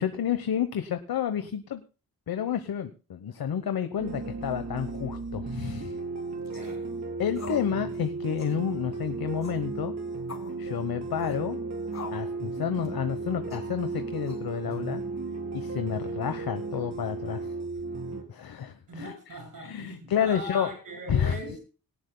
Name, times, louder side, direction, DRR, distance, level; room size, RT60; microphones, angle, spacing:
voice 1, 0.0-1.8 2.3-6.0 7.2-9.9 10.6-11.6 12.1-15.0 15.5-17.5 18.3-19.1 19.6-20.7 21.1-21.4, left 8 dB, 85° left, 1.0 m, -30 dB
sound 1, 4.0-18.2, right 3 dB, 50° right, 3.5 m, -35 dB
sound 2, 6.5-6.8 7.3-7.7 7.9-8.0 8.4-8.6 9.4-9.7 10.3-10.5 11.2-11.4 11.9-12.3 12.8-13.0 13.5-13.7 14.3-14.7, left 4 dB, 50° left, 3.4 m, -43 dB
voice 2, 6.5-6.9 18.9-21.6, right 1 dB, 65° right, 6.8 m, -40 dB
19.0 x 18.0 x 2.2 m
wide cardioid pair, 175°, 35 cm